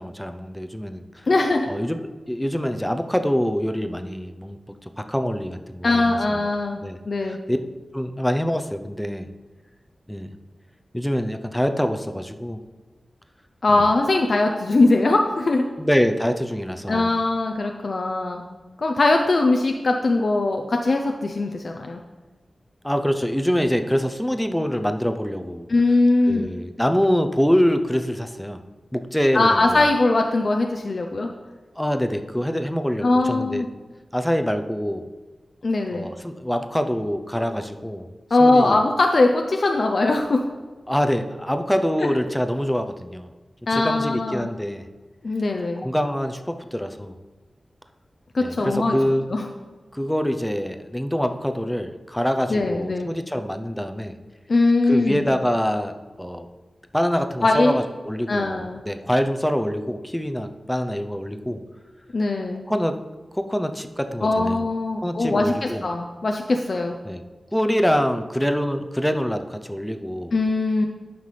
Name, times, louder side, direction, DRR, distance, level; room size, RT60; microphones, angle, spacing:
voice 1, 0.0-1.3 1.7-2.0 2.3-6.4 6.8-7.0 7.3-7.6 7.9-9.3 10.1-10.3 10.9-12.6 13.7-13.9 15.8-17.1 22.8-25.7 26.3-28.6 28.9-29.8 31.8-33.7 34.1-35.1 35.9-38.1 38.4-38.8 40.9-43.3 43.7-44.9 45.8-47.2 48.4-49.3 49.9-54.2 54.9-56.5 56.9-61.6 62.7-63.0 63.3-64.6 65.0-65.8 67.0-67.2 67.5-70.3, equal, 5° left, 7 dB, 0.6 m, -25 dB
voice 2, 1.3-1.7 5.8-6.8 7.1-7.4 13.6-15.6 16.9-18.5 18.8-22.0 25.7-26.5 29.3-31.3 33.0-33.7 35.6-36.1 38.3-40.4 43.7-44.5 45.2-45.9 48.3-49.0 49.3-49.5 52.5-53.1 54.5-55.3 57.4-57.8 58.3-58.8 62.1-62.7 64.2-66.9 70.3-70.9, left 2 dB, 60° left, 3 dB, 0.5 m, -21 dB
9.3 x 5.8 x 3.3 m, 1.3 s
cardioid pair, 50°, 0 cm